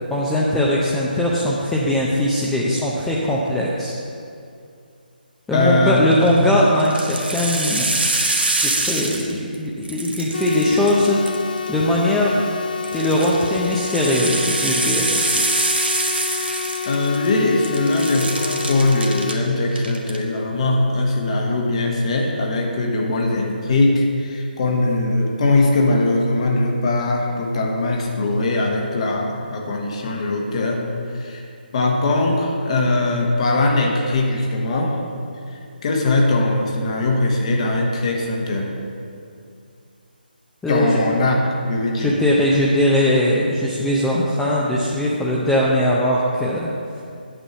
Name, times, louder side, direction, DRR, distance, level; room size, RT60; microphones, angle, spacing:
voice 1, 0.1-3.9 5.5-8.0 8.6-11.2 11.7-12.3 12.9-15.2 40.6-41.0 42.0-46.7, left 1 dB, 5° left, -5 dB, 0.6 m, -20 dB
voice 2, 5.5-6.2 16.3-16.5 16.8-30.8 31.1-31.4 31.7-35.0 35.5-38.7 40.7-41.4 41.7-42.2, left 2 dB, 40° left, 1 dB, 1.4 m, -20 dB
sound 1, 6.0-6.3 6.8-9.6 9.8-11.7 12.8-17.4 17.6-19.4 19.7-20.2, right 2 dB, 90° right, 1.3 m, -24 dB
sound 2, 10.3-19.3, left 6 dB, 60° left, 0.4 m, -29 dB
8.9 x 5.4 x 7.1 m, 2.4 s
figure-of-eight pair, 155°, 5 cm